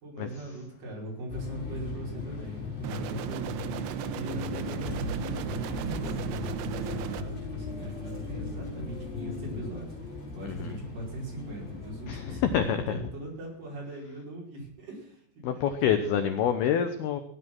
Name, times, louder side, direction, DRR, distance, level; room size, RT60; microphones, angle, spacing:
voice 1, 0.0-10.0 10.3-16.2, right 2 dB, 45° right, -1 dB, 6.5 m, -40 dB
sound 1, 1.3-12.7, left 6 dB, 45° left, 7.0 m, -38 dB
sound 2, 2.8-7.2, right 13 dB, 85° right, 2.2 m, -36 dB
sound 3, 4.8-12.4, right 1 dB, 20° left, 8.2 m, -43 dB
voice 2, 10.4-10.8 12.1-13.0 15.4-17.2, left 8 dB, 75° left, 9 dB, 2.4 m, -27 dB
18.0 x 11.0 x 6.1 m, 0.65 s
omnidirectional pair, 5.7 m